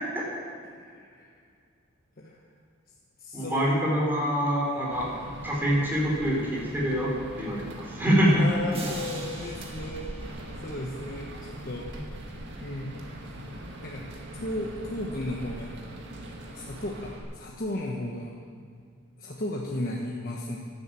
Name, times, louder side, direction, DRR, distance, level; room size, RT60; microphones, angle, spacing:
voice 1, 0.7-1.3 2.2-2.4 3.2-3.8 4.7-4.9 8.2-10.1 10.6-11.9 12.6-12.9 13.8-14.0 14.4-15.7 16.5-18.3 19.2-20.6, left 1 dB, 45° left, -2 dB, 1.2 m, -35 dB
voice 2, 3.3-5.1 5.4-8.5 11.9-12.0, equal, 10° right, -5 dB, 4.0 m, -25 dB
sound 1, 4.9-17.2, right 1 dB, 60° right, 1.9 m, -41 dB
sound 2, 8.7-11.5, right 2 dB, 30° right, 1.6 m, -42 dB
11.5 x 10.5 x 7.6 m, 2.1 s
head